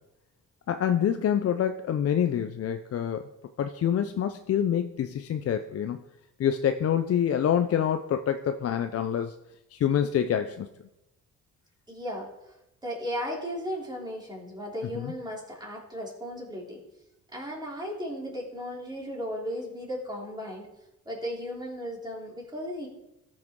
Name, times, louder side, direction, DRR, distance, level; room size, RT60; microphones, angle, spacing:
voice 1, 0.7-3.3 3.6-6.0 6.4-9.3 9.7-10.7 14.9-15.1, left 9 dB, 50° left, 8 dB, 0.6 m, -26 dB
voice 2, 11.9-12.6 12.8-16.8 17.3-20.7 21.1-22.9, equal, 15° right, -2 dB, 3.4 m, -35 dB
13.5 x 6.1 x 3.7 m, 0.89 s
cardioid pair, 90°, 30 cm